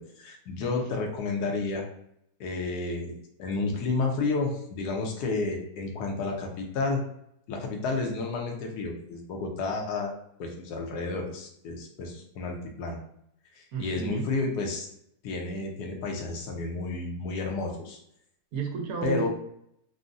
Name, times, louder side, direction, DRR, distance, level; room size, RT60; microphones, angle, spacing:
voice 1, 0.0-1.9 2.4-7.0 7.5-10.1 10.4-13.0 13.5-14.9 15.2-18.0 19.0-19.3, left 3 dB, 80° left, 1 dB, 1.2 m, -31 dB
voice 2, 13.7-14.3 18.5-19.3, right 5 dB, 75° right, 1 dB, 1.0 m, -32 dB
3.7 x 2.0 x 2.5 m, 0.73 s
omnidirectional pair, 1.7 m